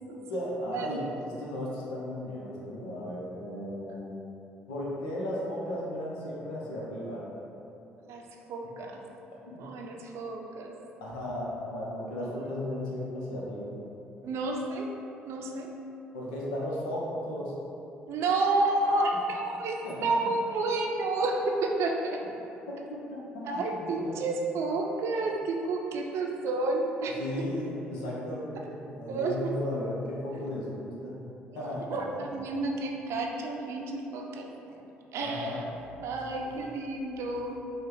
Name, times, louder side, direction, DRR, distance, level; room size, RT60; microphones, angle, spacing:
voice 1, 0.3-4.2 4.7-7.3 8.8-8.9 9.4-9.7 11.0-13.8 16.1-17.5 19.8-19.9 22.7-24.1 27.2-31.2 31.5-32.3 35.2-35.6 36.4-36.7, left 1 dB, 80° left, -5 dB, 0.8 m, -35 dB
voice 2, 8.5-9.0 9.6-10.7 12.3-12.5 14.2-14.9 15.3-15.7 18.1-22.2 23.5-27.2 29.1-29.4 31.9-34.8 35.1-35.6 36.0-37.6, right 2 dB, 65° right, 1 dB, 0.5 m, -30 dB
5.2 x 2.3 x 3.8 m, 2.9 s
hypercardioid pair, 55°, 5 cm